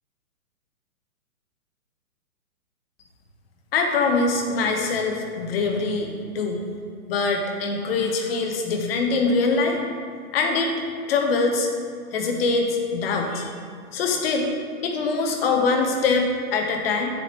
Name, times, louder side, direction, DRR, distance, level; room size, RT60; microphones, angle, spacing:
voice 1, 3.7-6.6 7.1-9.8 10.3-10.7 11.1-11.7 12.1-13.5 13.9-14.5 14.8-17.1, left 4 dB, 40° left, 3 dB, 1.0 m, -23 dB
7.9 x 6.5 x 2.9 m, 2.1 s
hypercardioid pair, 150°, 44 cm